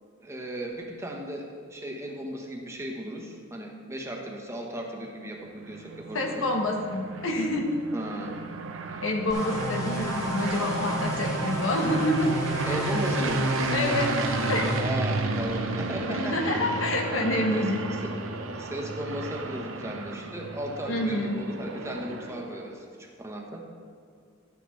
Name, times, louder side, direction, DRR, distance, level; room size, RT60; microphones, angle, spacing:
voice 1, 0.2-6.5 7.9-8.4 12.6-13.6 14.8-16.7 17.5-17.7 18.0-18.2 18.5-23.6, right 1 dB, 15° right, 0 dB, 1.1 m, -36 dB
sound 1, 5.5-22.7, right 2 dB, 80° right, 0.8 m, -32 dB
voice 2, 6.1-7.8 9.0-12.3 12.6-12.7 13.7-14.1 14.5-14.7 16.1-17.9 20.9-21.4, left 1 dB, 80° left, 2 dB, 1.3 m, -27 dB
sound 2, 9.3-14.8, equal, 15° left, 1.7 m, -33 dB
12.5 x 9.7 x 3.2 m, 2.2 s
head